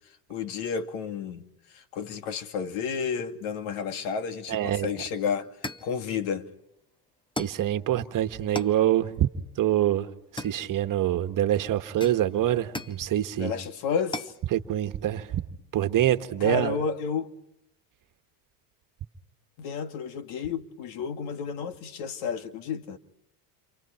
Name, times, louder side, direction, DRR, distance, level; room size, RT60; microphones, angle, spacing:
voice 1, 0.3-1.4 1.7-5.5 5.8-6.5 13.4-14.3 16.4-17.3 19.6-23.0, left 6 dB, 70° left, 2.4 m, -31 dB
voice 2, 4.5-4.9 7.4-9.3 9.6-10.1 10.3-13.5 14.5-15.3 15.7-16.8, right 12 dB, 40° right, 1.7 m, -25 dB
sound 1, 5.6-6.0 7.4-7.7 8.6-8.8 10.4-11.0 12.0-13.1 14.1-14.4, left 2 dB, 10° left, 0.9 m, -36 dB
29.5 x 27.5 x 4.5 m
supercardioid pair, 120°, 49 cm